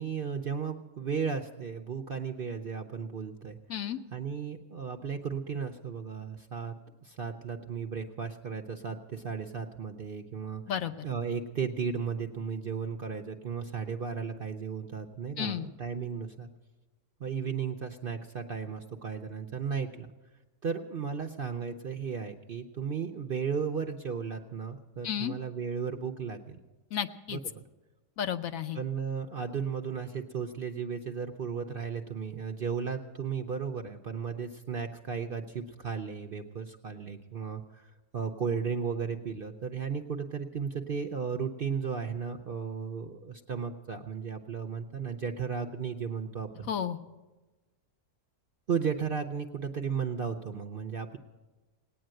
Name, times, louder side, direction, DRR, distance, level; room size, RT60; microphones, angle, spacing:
voice 1, 0.0-3.6 4.1-6.7 7.0-10.6 11.0-16.5 17.2-20.1 20.6-26.6 27.3-27.6 28.7-46.7 48.7-51.2, right 6 dB, 50° right, 4 dB, 0.7 m, -35 dB
voice 2, 26.9-27.4 28.2-28.8 46.7-47.0, left 9 dB, 70° left, 9 dB, 1.0 m, -32 dB
18.5 x 9.2 x 7.6 m, 1.2 s
omnidirectional pair, 1.6 m